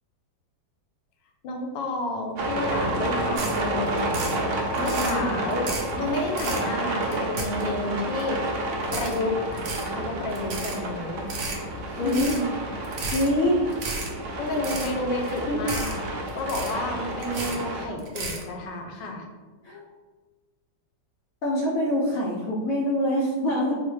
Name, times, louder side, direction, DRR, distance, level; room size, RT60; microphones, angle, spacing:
voice 1, 1.4-4.5 4.8-5.7 6.0-8.4 8.9-11.3 11.9-12.5 12.8-13.0 14.4-15.9 16.3-19.3, left 2 dB, 85° left, 2 dB, 1.3 m, -31 dB
sound 1, 2.4-17.9, right 1 dB, 85° right, 0.6 m, -30 dB
sound 2, 3.4-3.6 3.9-4.4 4.7-5.2 5.5-5.9 6.3-6.6 7.0-7.8 8.2-8.3 8.8-9.2 9.5-9.9 10.3-10.8 11.2-11.6 12.1-12.4 12.8-13.3 13.7-14.1 14.5-14.9 15.2-15.4 15.7-16.0 16.3-16.9 17.2-17.6 18.0-18.4, right 3 dB, 65° right, 1.1 m, -33 dB
voice 2, 5.0-5.3 12.0-12.3 13.1-13.7 15.3-15.6 19.6-19.9 21.4-23.8, equal, 70° left, -4 dB, 0.8 m, -25 dB
4.6 x 2.1 x 3.1 m, 1.3 s
omnidirectional pair, 1.9 m